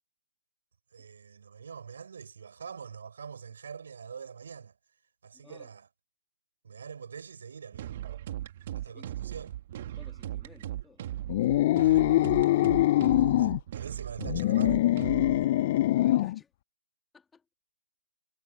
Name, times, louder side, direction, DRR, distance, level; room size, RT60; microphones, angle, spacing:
voice 1, 0.9-4.7 5.2-5.9 6.6-8.0 8.7-9.5 11.8-12.4 13.1-14.8, right 6 dB, 70° right, 7.0 m, -44 dB
sound 1, 7.7-15.4, right 12 dB, 45° right, 1.6 m, -38 dB
voice 2, 8.7-9.1 9.8-11.0 16.0-16.5 17.1-17.4, left 5 dB, 10° left, 2.7 m, -56 dB
sound 2, 11.3-13.6 14.2-16.4, left 15 dB, 40° left, 0.5 m, -23 dB
hypercardioid pair, 145°, 0 cm